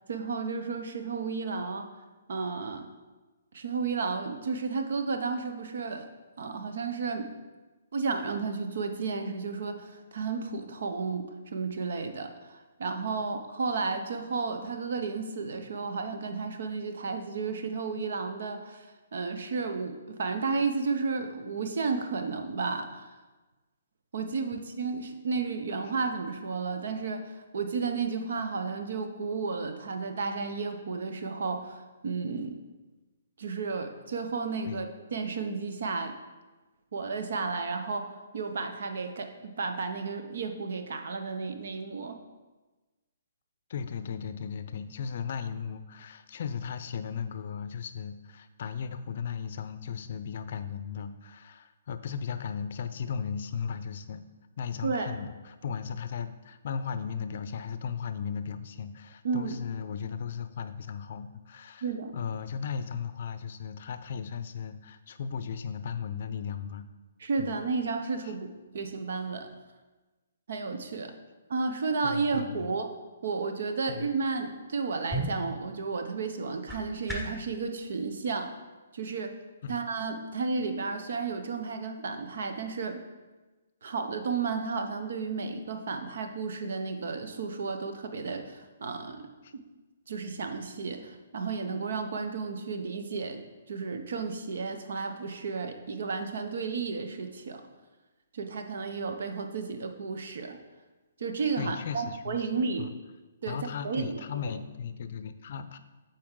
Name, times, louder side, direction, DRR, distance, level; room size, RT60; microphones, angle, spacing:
voice 1, 0.1-1.9 2.3-2.9 3.5-6.1 6.4-7.3 7.9-23.2 24.1-32.6 33.4-36.2 36.9-42.2 54.8-55.2 59.2-59.6 61.8-62.1 67.2-69.5 70.5-71.1 71.5-72.9 73.2-78.5 78.9-79.4 79.7-83.0 83.8-89.6 90.1-93.4 93.7-97.6 98.3-100.6 101.2-102.9 103.4-104.2, right 4 dB, 65° right, 6 dB, 0.7 m, -32 dB
voice 2, 43.7-54.2 54.6-61.9 62.1-66.8 67.4-67.6 72.0-72.7 73.9-74.1 79.6-79.8 89.4-89.5 101.6-102.9 103.5-105.8, left 7 dB, 55° left, 11 dB, 0.5 m, -36 dB
sound 1, 74.7-77.5, right 1 dB, 5° right, 1.0 m, -37 dB
7.6 x 4.5 x 3.7 m, 1.2 s
hypercardioid pair, 145°, 0 cm